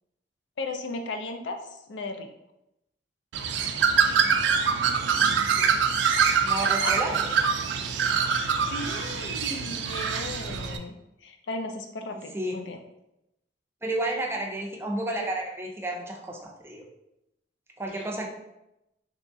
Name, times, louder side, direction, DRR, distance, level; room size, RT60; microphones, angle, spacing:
voice 1, 0.6-2.3 6.8-6.9 8.3-10.9 11.2-12.8 17.9-18.1, left 2 dB, 90° left, 5 dB, 0.4 m, -36 dB
Bird, 3.3-10.8, right 6 dB, 80° right, 0.3 m, -24 dB
voice 2, 6.4-7.4 12.1-12.6 13.8-16.9 17.8-18.3, right 1 dB, 15° right, 0 dB, 0.4 m, -31 dB
3.6 x 3.0 x 2.6 m, 0.88 s
head